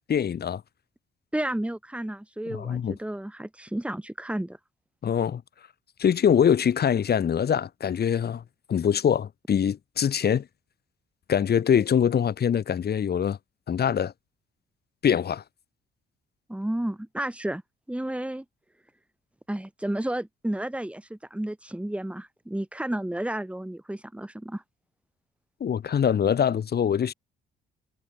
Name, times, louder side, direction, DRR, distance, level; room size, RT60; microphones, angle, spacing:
voice 1, 0.1-0.6 2.5-2.9 5.0-5.4 6.0-8.4 8.7-10.5 11.3-13.4 13.7-14.1 15.0-15.4 25.6-27.1, left 8 dB, 55° left, 3.0 m, -23 dB
voice 2, 1.3-4.6 16.5-17.6 17.9-18.4 19.5-24.6, right 1 dB, 5° right, 4.6 m, -32 dB
cardioid pair, 90°, 20 cm